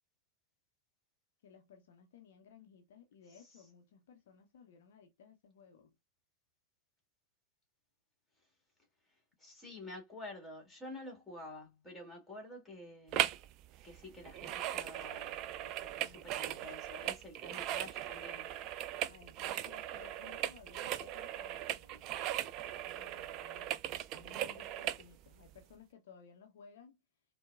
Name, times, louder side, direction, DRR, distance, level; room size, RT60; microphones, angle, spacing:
voice 1, 1.4-5.9 15.5-16.7 19.1-23.7 24.1-27.0, left 6 dB, 60° left, 0.6 m, -59 dB
voice 2, 9.4-13.3 13.8-15.5 16.0-18.5, left 1 dB, 5° left, 1.8 m, -49 dB
sound 1, 13.1-13.5 13.7-25.0 25.6-25.7, right 12 dB, 40° right, 0.3 m, -38 dB
4.4 x 2.2 x 2.3 m
figure-of-eight pair, 90°, 0 cm